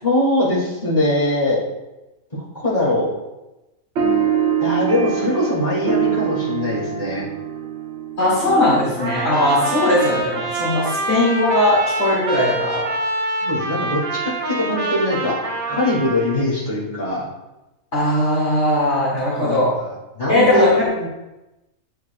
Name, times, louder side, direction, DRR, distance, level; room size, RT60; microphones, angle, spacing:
voice 1, 0.0-1.6 2.3-3.1 4.6-7.3 13.4-15.4 15.7-17.3 19.4-21.1, left 1 dB, 35° left, -7 dB, 2.5 m, -22 dB
sound 1, 4.0-10.8, right 7 dB, 60° right, 0.9 m, -25 dB
voice 2, 8.2-12.8 17.9-19.7 20.3-20.9, left 1 dB, 55° left, -8 dB, 2.3 m, -18 dB
Trumpet, 9.0-16.4, right 2 dB, 40° right, 1.1 m, -26 dB
9.4 x 5.7 x 2.3 m, 0.99 s
omnidirectional pair, 1.4 m